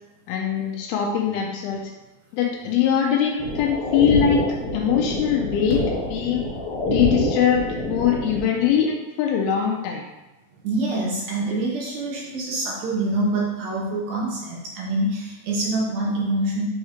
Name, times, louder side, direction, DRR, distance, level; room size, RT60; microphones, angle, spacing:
voice 1, 0.3-1.9 2.3-4.4 4.7-5.8 6.1-6.4 6.9-10.0, left 8 dB, 85° left, 0 dB, 2.2 m, -22 dB
sound 1, 3.4-8.4, left 1 dB, 55° left, 2.9 m, -26 dB
voice 2, 10.6-16.7, right 2 dB, 75° right, -3 dB, 2.2 m, -25 dB
6.3 x 3.2 x 4.9 m, 1.1 s
omnidirectional pair, 5.0 m